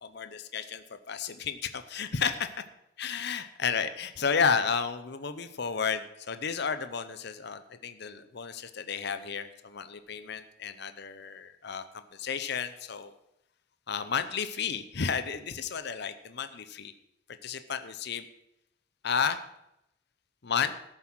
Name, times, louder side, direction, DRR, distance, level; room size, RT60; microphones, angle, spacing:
voice 1, 0.0-2.5 3.0-11.8 12.1-13.1 13.9-16.9 17.4-18.3 19.0-19.4 20.4-20.7, left 6 dB, 55° left, 11 dB, 0.7 m, -32 dB
13.0 x 7.6 x 6.1 m, 0.83 s
head